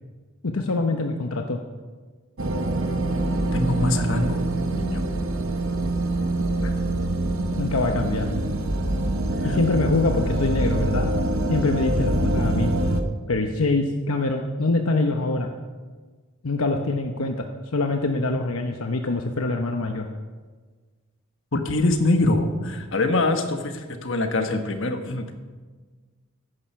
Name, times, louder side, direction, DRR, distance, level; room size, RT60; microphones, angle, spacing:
voice 1, 0.4-1.6 6.6-6.7 7.6-8.3 9.4-11.1 11.5-12.8 13.3-15.5 16.4-17.5 17.7-20.1, left 3 dB, 75° left, 4 dB, 1.0 m, -24 dB
sound 1, 2.4-13.0, right 1 dB, 65° right, 1.1 m, -25 dB
voice 2, 3.5-4.4 4.7-5.0 21.5-25.4, left 2 dB, 60° left, 6 dB, 1.4 m, -24 dB
15.0 x 11.0 x 5.7 m, 1.4 s
head